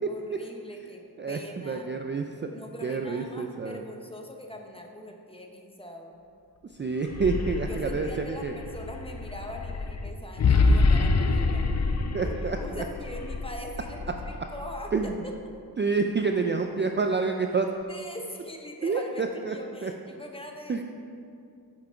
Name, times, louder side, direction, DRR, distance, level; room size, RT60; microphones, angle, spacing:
voice 1, 0.1-2.0 2.5-6.1 7.7-11.6 12.2-15.1 17.9-20.8, left 1 dB, 15° left, 2 dB, 0.8 m, -42 dB
voice 2, 1.2-2.5 2.8-3.8 6.8-8.5 12.1-12.8 14.9-15.1 15.8-17.7 18.8-19.6 19.8-19.9 20.7-20.8, right 4 dB, 30° right, 4 dB, 0.4 m, -28 dB
sound 1, 7.0-15.1, left 3 dB, 40° left, 0.5 m, -27 dB
8.7 x 5.9 x 4.4 m, 2.4 s
wide cardioid pair, 95°, 40 cm